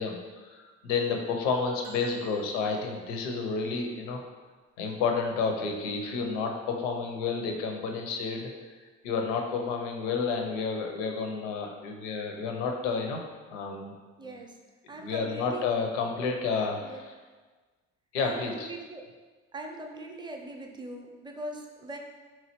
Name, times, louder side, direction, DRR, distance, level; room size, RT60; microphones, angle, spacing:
voice 1, 0.0-4.2 4.8-8.5 9.0-13.2 13.5-13.9 14.2-14.4 15.0-17.1 18.1-18.7, left 5 dB, 75° left, 3 dB, 0.5 m, -30 dB
sound 1, 1.8-3.2 4.0-4.1, right 2 dB, 75° right, 0.6 m, -50 dB
voice 2, 14.2-14.6 14.9-15.6 16.8-17.0 18.2-19.0 19.5-22.0, right 2 dB, 15° right, 2 dB, 0.5 m, -41 dB
3.7 x 3.0 x 2.9 m, 1.4 s
figure-of-eight pair, 45°, 36 cm